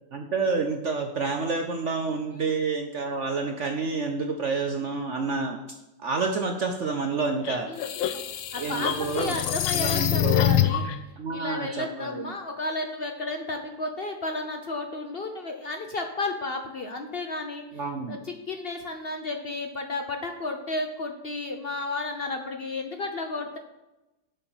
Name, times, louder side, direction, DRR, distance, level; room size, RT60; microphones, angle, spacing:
voice 1, 0.1-5.8 6.0-7.7 8.6-9.4 9.7-10.5 11.2-12.3 17.7-18.2, right 4 dB, 60° right, 4 dB, 0.7 m, -29 dB
sound 1, 7.4-10.9, left 11 dB, 85° left, 1.5 m, -25 dB
voice 2, 8.5-10.8 11.3-17.6 18.1-23.6, left 2 dB, 65° left, 5 dB, 0.5 m, -32 dB
7.9 x 7.0 x 6.0 m, 1.0 s
omnidirectional pair, 2.1 m